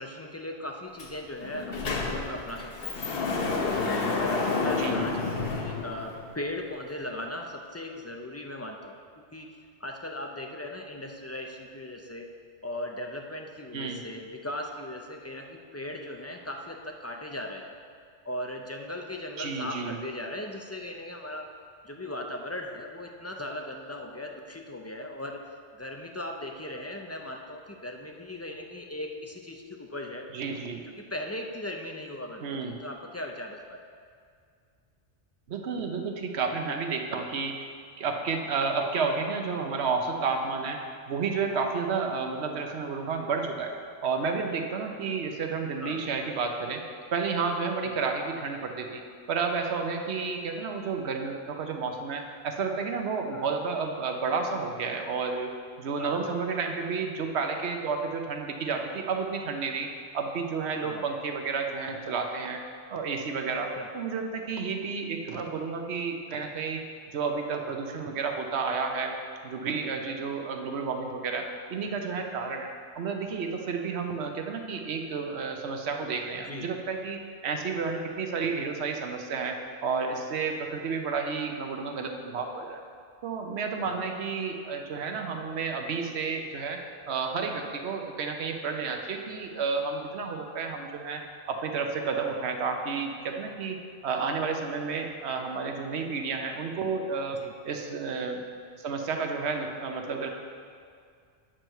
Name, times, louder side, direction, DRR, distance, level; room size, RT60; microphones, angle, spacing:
voice 1, 0.0-3.0 3.6-12.3 12.6-17.8 18.2-21.5 21.8-25.4 25.8-30.3 31.0-33.8 45.8-46.0 47.8-48.0 53.3-53.6 56.0-56.4 60.8-61.0 63.8-63.9 76.5-76.7 83.8-84.1 92.2-92.4 97.4-97.5, left 1 dB, 20° left, 2 dB, 0.4 m, -38 dB
Sliding door, 1.0-1.1 1.4-6.4, left 3 dB, 65° left, 1.0 m, -30 dB
voice 2, 19.4-20.0 30.3-30.8 32.4-32.8 35.5-37.5 38.0-40.8 41.1-43.7 44.0-46.8 47.1-49.0 49.3-55.5 55.8-59.9 60.1-62.6 62.9-66.8 67.1-69.1 69.4-82.8 83.2-86.8 87.1-91.2 91.5-93.8 94.0-97.4 97.6-98.4 98.8-100.3, right 5 dB, 90° right, 4 dB, 1.1 m, -31 dB
9.0 x 4.6 x 6.5 m, 2.2 s
omnidirectional pair, 1.1 m